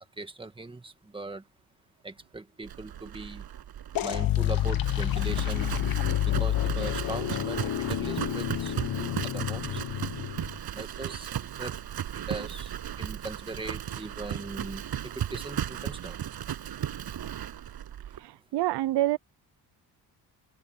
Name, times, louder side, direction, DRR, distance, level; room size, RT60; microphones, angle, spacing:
voice 1, 0.2-1.4 2.0-3.4 4.0-5.8 6.2-9.8 10.7-11.8 12.3-12.7 13.0-16.2, right 2 dB, 15° right, 1.7 m, -40 dB
Livestock farm animals working animals, 2.7-18.2, right 10 dB, 70° right, 7.1 m, -36 dB
sound 1, 3.9-10.6, left 12 dB, 60° left, 1.0 m, -29 dB
voice 2, 18.2-19.2, right 15 dB, 90° right, 0.6 m, -27 dB
open air
cardioid pair, 130°, 39 cm